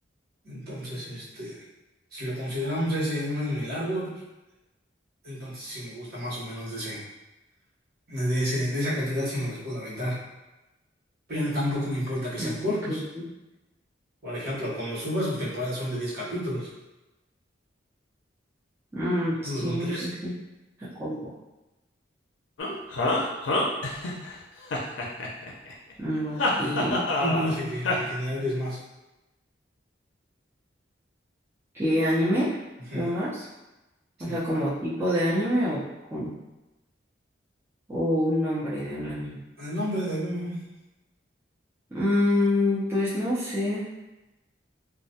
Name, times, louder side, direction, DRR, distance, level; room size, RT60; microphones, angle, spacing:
voice 1, 0.4-1.6 2.1-4.1 5.2-7.0 8.1-10.2 11.3-13.0 14.2-16.7 19.4-20.1 26.6-26.8 27.2-28.8 32.9-33.1 34.2-34.4 39.6-40.6, equal, 55° right, -9 dB, 0.9 m, -30 dB
voice 2, 12.4-13.0 18.9-20.3 21.0-21.3 26.0-27.1 31.8-32.6 32.9-33.4 34.2-35.8 36.1-36.3 37.9-39.4 41.9-43.9, left 1 dB, 15° right, -11 dB, 0.5 m, -26 dB
sound 1, 22.6-24.3 24.7-25.7 26.4-27.6 27.8-28.0, left 2 dB, 75° left, 0.4 m, -26 dB
2.2 x 2.1 x 2.7 m, 1.0 s
head